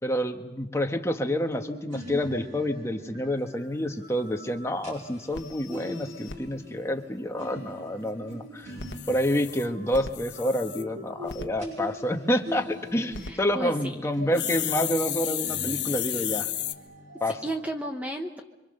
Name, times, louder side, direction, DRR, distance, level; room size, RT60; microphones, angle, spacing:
voice 1, 0.0-8.8 9.1-16.5 17.2-17.4, equal, 15° left, 4 dB, 1.4 m, -28 dB
sound 1, 1.3-13.8 14.0-17.6, equal, 40° right, 7.0 m, -42 dB
sound 2, 4.2-4.3 4.7-4.8 5.0-5.1 5.3-6.4 8.6-10.8 11.3-11.5 12.9-13.3 14.3-16.7, left 11 dB, 65° left, 1.2 m, -33 dB
voice 2, 13.2-14.1 17.4-18.4, right 1 dB, 10° right, 4 dB, 1.0 m, -33 dB
26.5 x 24.5 x 6.7 m, 1.1 s
head